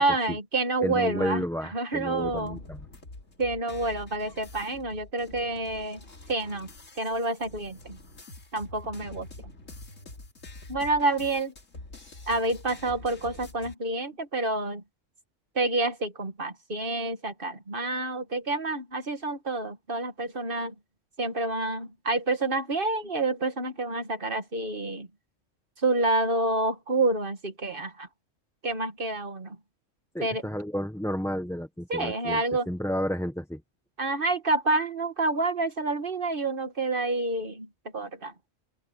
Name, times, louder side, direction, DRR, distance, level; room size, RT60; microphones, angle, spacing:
voice 1, 0.0-1.4 1.7-2.6 3.4-6.0 6.3-6.7 7.0-8.0 8.5-9.3 10.7-11.5 12.3-14.8 15.6-20.7 21.2-25.1 25.8-28.1 28.6-29.6 30.2-30.4 31.9-32.7 34.0-37.7 37.9-38.3, right 2 dB, 45° right, 2.0 m, -28 dB
voice 2, 0.8-2.8 30.1-33.6, equal, 5° left, 0.8 m, -31 dB
sound 1, 2.2-13.7, left 2 dB, 75° left, 3.3 m, -46 dB
open air
omnidirectional pair, 1.3 m